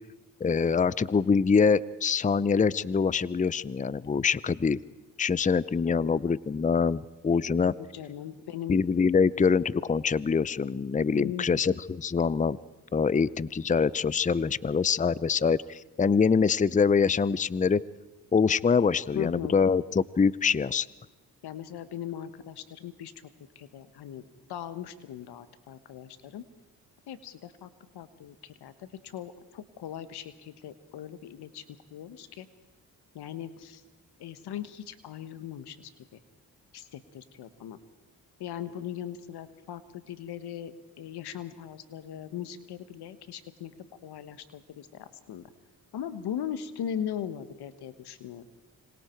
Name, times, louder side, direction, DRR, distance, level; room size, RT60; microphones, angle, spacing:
voice 1, 0.4-4.8 5.2-7.7 8.7-12.6 12.9-17.8 18.3-20.9, left 5 dB, 20° left, 19 dB, 0.6 m, -24 dB
voice 2, 5.8-6.2 7.3-8.8 11.1-11.5 19.1-19.5 21.4-23.1 23.5-24.2 24.5-26.4 27.1-27.7 27.9-28.7 29.0-31.6 31.9-32.5 33.1-33.8 34.2-36.2 36.7-37.8 38.4-43.7 44.0-45.5 45.9-48.4, left 9 dB, 85° left, 12 dB, 1.4 m, -39 dB
26.5 x 25.0 x 4.6 m, 1.1 s
supercardioid pair, 55°, 38 cm